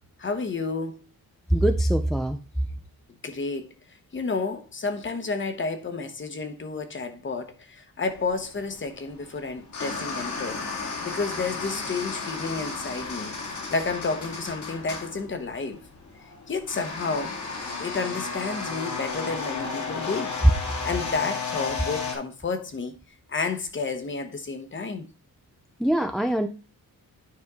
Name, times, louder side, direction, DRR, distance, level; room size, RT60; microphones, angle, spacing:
voice 1, 0.2-1.1 3.2-3.7 4.1-13.3 13.7-15.8 16.5-17.4 17.8-20.3 20.8-22.9 23.3-25.1, left 4 dB, 35° left, 1.1 m, -31 dB
voice 2, 1.5-2.4 25.8-26.5, right 1 dB, ahead, 0.4 m, -23 dB
sound 1, 8.1-22.2, left 4 dB, 50° left, 2.0 m, -34 dB
9.7 x 5.4 x 3.6 m
wide cardioid pair, 175°, 36 cm